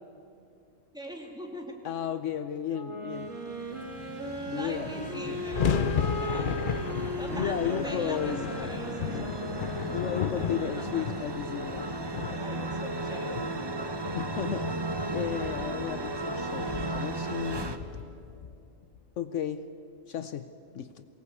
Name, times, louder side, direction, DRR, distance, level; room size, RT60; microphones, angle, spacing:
voice 1, 0.9-1.8 4.6-5.9 6.2-6.6 7.2-9.4 10.3-11.0 12.4-13.5, equal, 5° right, 1 dB, 2.5 m, -42 dB
voice 2, 1.8-3.3 4.5-5.4 6.2-6.6 7.3-8.5 9.9-11.9 14.1-17.8 19.2-19.7 20.1-20.5 20.7-21.1, left 9 dB, 70° left, 11 dB, 1.0 m, -34 dB
Wind instrument woodwind instrument, 2.7-11.0, right 1 dB, 75° right, 3.0 m, -37 dB
sound 1, 3.1-17.8, right 2 dB, 20° right, 0.9 m, -36 dB
sound 2, 4.4-4.5 4.6-19.0, left 7 dB, 50° left, 0.7 m, -35 dB
22.5 x 18.5 x 8.3 m, 2.5 s
omnidirectional pair, 1.3 m